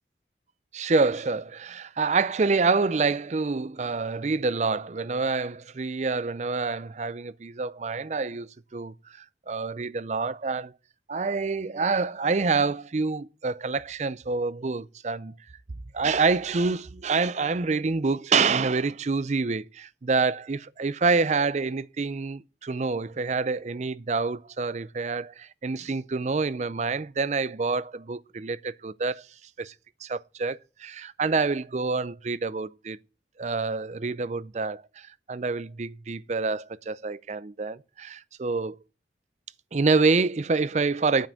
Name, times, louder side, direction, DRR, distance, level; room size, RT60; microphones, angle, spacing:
voice 1, 0.7-10.7 11.1-15.3 15.9-29.2 29.6-29.7 30.0-33.0 33.4-38.8 39.7-41.3, right 4 dB, 40° right, 0.5 m, -27 dB
9.0 x 7.4 x 7.6 m
head